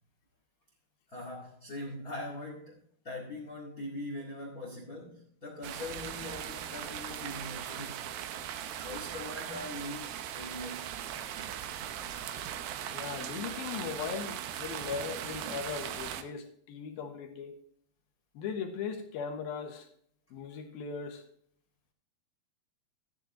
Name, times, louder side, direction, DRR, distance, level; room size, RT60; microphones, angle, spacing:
voice 1, 1.1-8.1 8.8-10.9, left 1 dB, 35° left, 0 dB, 1.5 m, -42 dB
sound 1, 5.6-16.2, right 10 dB, 75° right, 2.4 m, -39 dB
voice 2, 12.9-17.6 18.3-19.9 20.3-21.2, left 6 dB, 70° left, 4 dB, 3.0 m, -38 dB
13.0 x 10.0 x 2.9 m, 0.63 s
omnidirectional pair, 4.7 m